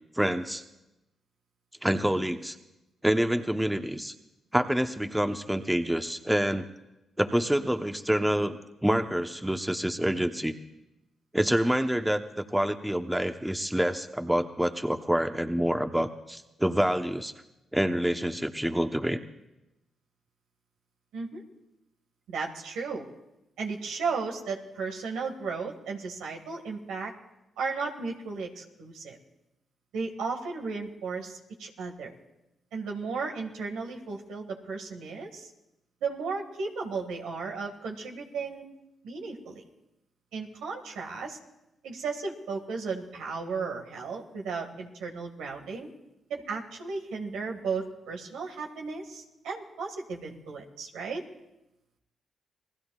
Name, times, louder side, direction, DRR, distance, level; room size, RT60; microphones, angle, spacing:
voice 1, 0.2-0.6 1.8-2.5 3.0-4.1 4.5-6.7 7.2-10.6 11.3-17.3 17.7-19.2, equal, 5° right, 7 dB, 1.0 m, -27 dB
voice 2, 22.3-23.1 23.6-27.1 27.6-29.2 29.9-32.1 32.7-35.5 36.0-38.6 39.0-39.6 40.3-41.4 41.8-45.9 46.3-51.2, right 4 dB, 85° right, 1 dB, 1.9 m, -35 dB
29.0 x 19.0 x 2.5 m, 0.93 s
supercardioid pair, 50°, 0 cm